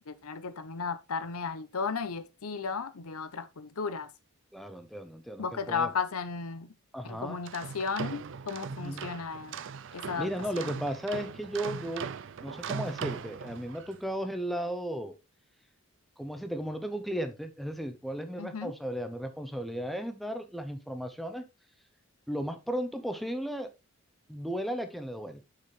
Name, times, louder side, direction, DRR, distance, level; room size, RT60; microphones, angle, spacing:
voice 1, 0.1-4.1 5.4-6.7 7.0-9.6 9.9-10.3 10.6-10.7 18.4-18.7, left 5 dB, 80° left, 0.8 m, -34 dB
voice 2, 4.5-5.9 6.9-7.4 8.8-9.0 10.2-12.1 12.4-15.2 16.2-21.5 22.3-23.7 24.3-25.4, equal, ahead, 0.7 m, -35 dB
sound 1, 7.3-14.0, right 6 dB, 55° right, 0.4 m, -39 dB
6.7 x 5.7 x 3.2 m
head